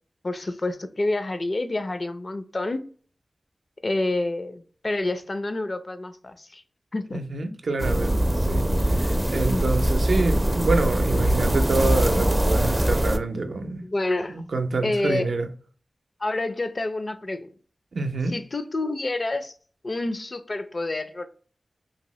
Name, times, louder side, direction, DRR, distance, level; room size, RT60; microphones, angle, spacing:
voice 1, 0.2-2.8 3.8-6.6 6.9-7.2 9.5-9.7 13.8-14.4 14.8-15.3 16.2-17.5 18.3-19.5 19.8-21.3, left 2 dB, 45° left, 0.4 m, -28 dB
voice 2, 7.1-8.7 8.9-13.8 14.3-15.5 17.9-18.3, right 3 dB, 80° right, 0.4 m, -27 dB
sound 1, 7.8-13.2, right 1 dB, 20° right, 0.4 m, -22 dB
2.7 x 2.7 x 3.0 m
wide cardioid pair, 60°, 0 cm